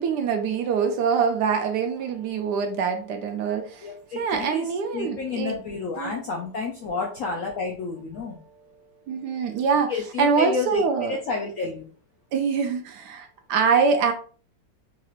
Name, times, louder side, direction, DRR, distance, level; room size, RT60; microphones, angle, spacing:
voice 1, 0.0-5.6 6.0-6.2 8.3-11.2 12.3-14.1, right 5 dB, 75° right, 6 dB, 1.1 m, -25 dB
voice 2, 3.8-4.7 4.9-8.4 9.9-10.8 11.1-11.9, left 4 dB, 70° left, 0 dB, 0.7 m, -30 dB
4.0 x 2.4 x 3.0 m, 0.40 s
omnidirectional pair, 2.0 m